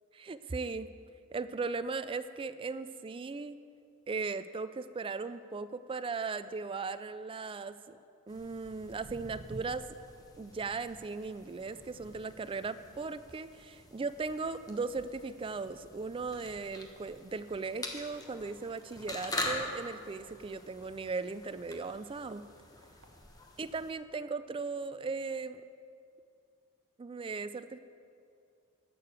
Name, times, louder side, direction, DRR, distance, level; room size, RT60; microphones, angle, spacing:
voice 1, 0.1-0.9 1.3-3.6 4.1-8.0 8.3-9.9 10.4-22.5 23.6-25.6 27.0-27.8, right 4 dB, 25° right, 12 dB, 0.3 m, -37 dB
sound 1, 8.3-23.9, left 1 dB, 15° left, 1.1 m, -45 dB
Walk footsteps, 8.4-15.0 15.4-15.7 16.3-16.4 17.0-17.1 17.5-17.6 17.8-17.9 18.5-18.7 19.3-20.9 21.5-21.6 22.3-22.4 22.8-23.1 23.8-23.9, right 1 dB, 60° right, 1.0 m, -54 dB
11.5 x 6.8 x 7.0 m, 2.4 s
head